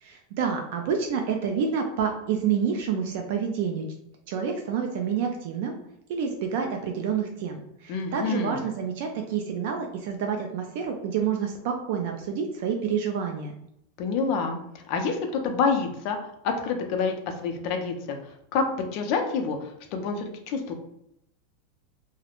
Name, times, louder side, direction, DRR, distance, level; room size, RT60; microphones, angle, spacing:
voice 1, 0.0-3.9 4.3-5.7 6.1-13.5, right 7 dB, 55° right, 3 dB, 0.3 m, -28 dB
voice 2, 7.9-8.6 14.0-14.6 14.9-18.2 18.5-20.7, left 5 dB, 40° left, 4 dB, 0.4 m, -27 dB
2.4 x 2.0 x 2.9 m, 0.77 s
supercardioid pair, 175°, 0 cm